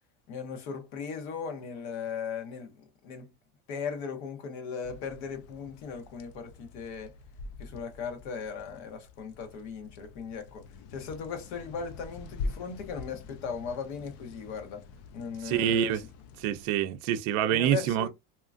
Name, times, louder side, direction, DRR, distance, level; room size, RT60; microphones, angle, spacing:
voice 1, 0.3-3.3 3.7-7.2 7.6-14.8 15.1-16.0 17.5-18.1, left 6 dB, 80° left, 1.1 m, -38 dB
sound 1, 4.8-16.7, left 3 dB, 50° left, 0.4 m, -44 dB
voice 2, 15.4-16.0 16.4-18.1, right 10 dB, 50° right, 0.5 m, -26 dB
2.9 x 2.4 x 2.4 m
cardioid pair, 150°, 33 cm